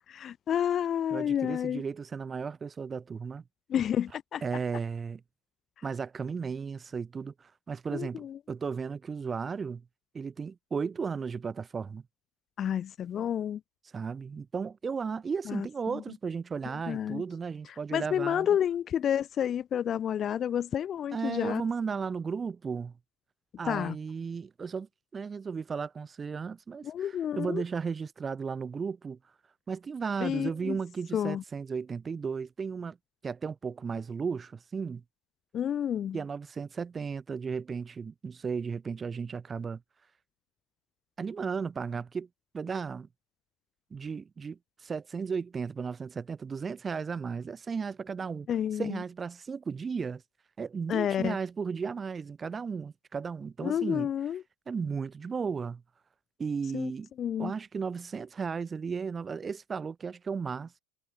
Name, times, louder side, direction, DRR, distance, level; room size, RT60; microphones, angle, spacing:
voice 1, 0.2-1.8 3.7-4.4 7.9-8.4 12.6-13.6 15.5-16.0 16.9-17.2 17.9-21.6 23.7-24.0 26.8-27.6 30.2-30.8 31.1-31.4 35.5-36.2 48.5-49.0 50.9-51.4 53.6-54.4 56.7-56.9 57.2-57.5, left 9 dB, 30° left, 1.7 m, -30 dB
voice 2, 1.1-3.4 4.4-5.2 5.8-9.8 10.1-12.0 13.9-18.5 21.1-22.9 23.6-29.2 29.7-33.0 33.2-35.0 36.1-39.8 41.2-42.3 42.5-43.1 43.9-48.5 48.8-50.2 50.6-54.1 54.7-55.8 56.4-57.1 57.4-60.8, right 5 dB, 20° right, 7.9 m, -35 dB
supercardioid pair, 140°, 0 cm